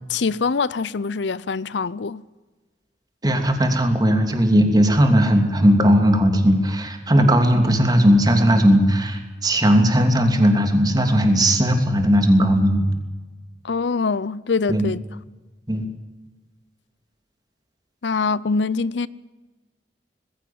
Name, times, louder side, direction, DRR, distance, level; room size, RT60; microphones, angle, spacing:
voice 1, 0.1-2.2 13.6-15.0 18.0-19.1, left 4 dB, 75° left, 0.6 m, -24 dB
voice 2, 3.2-12.9 14.7-14.9 15.7-15.9, equal, 20° right, 3.0 m, -17 dB
20.5 x 16.0 x 9.4 m
head